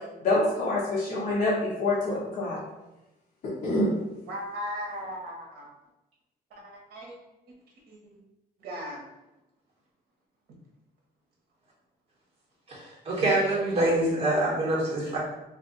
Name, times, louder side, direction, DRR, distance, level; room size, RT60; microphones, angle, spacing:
voice 1, 0.2-2.6 3.4-3.9, left 2 dB, 45° left, -8 dB, 0.8 m, -26 dB
voice 2, 4.3-5.7 6.6-7.1 7.9-8.0 8.6-9.0, equal, 60° right, -1 dB, 1.0 m, -37 dB
voice 3, 12.7-15.2, right 1 dB, 35° right, -5 dB, 1.2 m, -25 dB
2.5 x 2.4 x 3.9 m, 0.97 s
cardioid pair, 165°, 17 cm